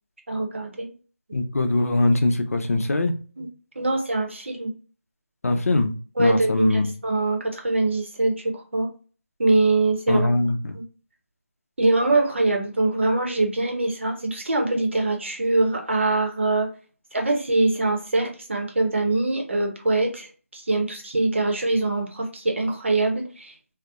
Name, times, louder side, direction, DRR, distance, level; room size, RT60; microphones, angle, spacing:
voice 1, 0.3-1.0 3.4-3.5 3.7-4.8 6.2-9.0 9.4-10.3 10.7-10.8 11.8-16.7 17.1-23.7, right 2 dB, 55° right, 0.7 m, -23 dB
voice 2, 1.3-3.1 5.4-6.9 10.1-10.8, left 2 dB, 70° left, 0.5 m, -22 dB
2.7 x 2.0 x 2.3 m
figure-of-eight pair, 175°, 8 cm